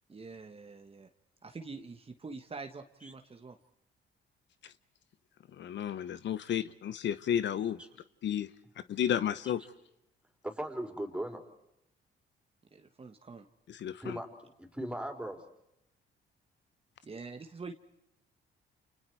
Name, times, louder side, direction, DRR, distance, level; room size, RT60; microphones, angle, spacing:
voice 1, 0.1-1.1 1.4-3.6 12.7-13.4 17.0-17.7, right 4 dB, 30° right, 5 dB, 1.5 m, -45 dB
voice 2, 5.6-7.8 8.2-8.5 8.9-9.6 13.7-14.2, left 9 dB, 65° left, 14 dB, 1.0 m, -32 dB
voice 3, 10.4-11.4 14.0-14.3 14.6-15.4, right 1 dB, 5° right, 3 dB, 4.5 m, -38 dB
29.5 x 28.0 x 4.7 m, 0.83 s
cardioid pair, 90°, 20 cm